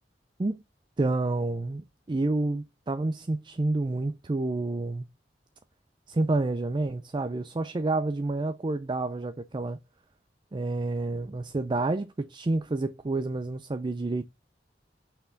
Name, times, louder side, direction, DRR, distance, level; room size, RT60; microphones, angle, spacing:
voice 1, 1.0-5.1 6.1-9.8 10.5-14.2, right 2 dB, 25° right, 0.4 m, -29 dB
5.8 x 4.6 x 3.9 m
head